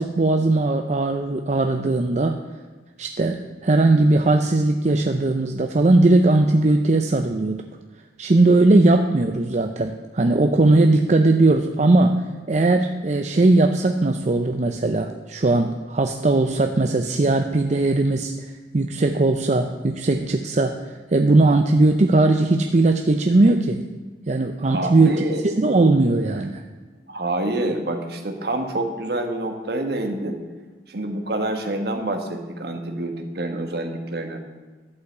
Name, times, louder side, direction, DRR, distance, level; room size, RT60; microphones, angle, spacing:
voice 1, 0.0-2.4 3.0-7.6 8.2-23.8 24.3-25.2 25.6-26.6, right 2 dB, 40° right, 5 dB, 0.6 m, -19 dB
voice 2, 24.7-25.5 27.1-30.4 30.9-34.4, right 1 dB, 60° right, 5 dB, 1.5 m, -27 dB
11.5 x 5.7 x 8.1 m, 1.4 s
head